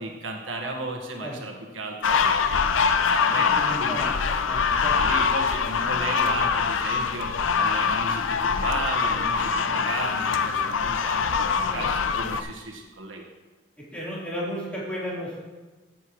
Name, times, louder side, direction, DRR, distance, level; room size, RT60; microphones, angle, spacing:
voice 1, 0.0-4.1 5.0-13.3, right 2 dB, 90° right, 1 dB, 1.6 m, -35 dB
sound 1, 2.0-12.4, left 5 dB, 85° left, 0.6 m, -24 dB
voice 2, 3.3-4.2 4.4-5.0 11.7-11.9 13.9-15.4, equal, 5° left, -8 dB, 3.8 m, -33 dB
15.5 x 8.1 x 3.2 m, 1.3 s
head